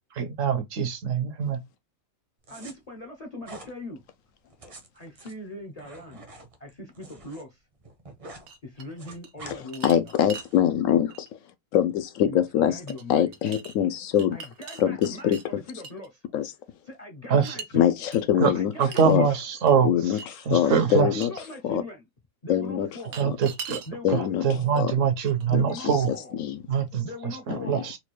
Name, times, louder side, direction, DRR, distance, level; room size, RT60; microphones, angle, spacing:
voice 1, 0.2-1.6 17.3-17.6 18.4-18.5 18.8-20.2 20.5-21.3 23.2-23.8 24.1-26.1 26.7-28.0, right 7 dB, 65° right, 1.1 m, -24 dB
sound 1, 2.4-2.7 3.4-3.7 4.5-7.4 7.7-8.5 8.8-9.6 10.1-10.6, right 2 dB, 35° right, 0.6 m, -46 dB
voice 2, 2.5-4.0 4.9-6.2 6.6-7.6 8.6-10.2 12.3-13.3 14.3-16.2 16.9-18.0 18.5-19.3 20.6-22.1 22.4-23.2 23.9-24.7 25.5-26.3 27.0-27.9, left 2 dB, 40° left, 0.5 m, -41 dB
sound 2, 8.5-9.3 9.7-10.5 11.1-11.3 12.9-13.0 13.3-13.7 14.1-15.4 15.8-16.1 17.4-17.7 18.1-18.2 18.9-19.2 19.7-19.8 20.2-20.3 20.7-20.8 21.2-21.3 23.0-23.9 24.8-24.9 25.2-25.7, right 5 dB, 90° right, 1.2 m, -41 dB
voice 3, 9.5-11.3 11.7-12.8 13.1-14.4 14.8-15.4 16.3-16.5 17.7-18.7 19.1-19.3 19.8-21.3 21.6-21.8 22.5-22.9 24.0-24.4 24.7-24.9 25.5-25.9 26.4-26.6 27.5-27.8, left 10 dB, 75° left, 0.9 m, -24 dB
4.2 x 2.3 x 3.0 m
omnidirectional pair, 1.5 m